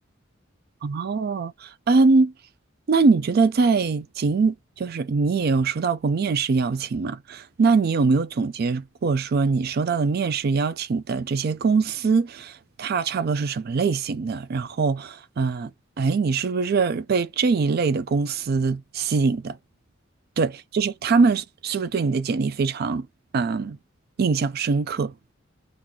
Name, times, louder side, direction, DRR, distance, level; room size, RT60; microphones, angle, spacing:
voice 1, 0.8-2.3 2.9-15.7 16.0-19.6 20.4-23.1 23.3-23.8 24.2-25.1, right 4 dB, 50° right, 0.4 m, -23 dB
3.8 x 2.5 x 2.8 m
head